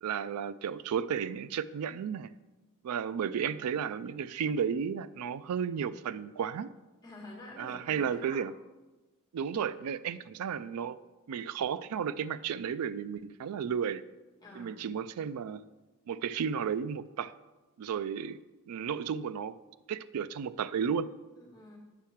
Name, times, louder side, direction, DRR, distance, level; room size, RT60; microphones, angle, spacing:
voice 1, 0.0-2.3 2.8-6.7 7.6-8.5 9.3-11.0 11.3-14.0 14.6-15.6 16.1-17.3 17.8-18.4 18.7-19.6 19.9-21.1, right 7 dB, 80° right, 15 dB, 0.3 m, -33 dB
voice 2, 7.0-8.5 14.4-14.8 21.4-21.8, left 1 dB, 20° left, -4 dB, 2.1 m, -48 dB
8.6 x 5.6 x 4.5 m, 1.1 s
head